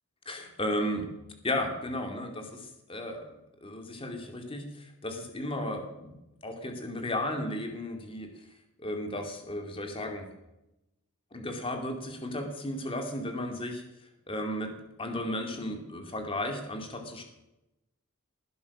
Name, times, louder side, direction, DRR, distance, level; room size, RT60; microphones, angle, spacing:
voice 1, 0.3-1.1 1.4-3.3 3.6-6.2 6.4-8.3 8.8-10.3 11.3-13.8 14.3-14.7 15.0-17.2, left 1 dB, 25° left, 4 dB, 2.5 m, -34 dB
19.0 x 11.0 x 6.1 m, 0.93 s
head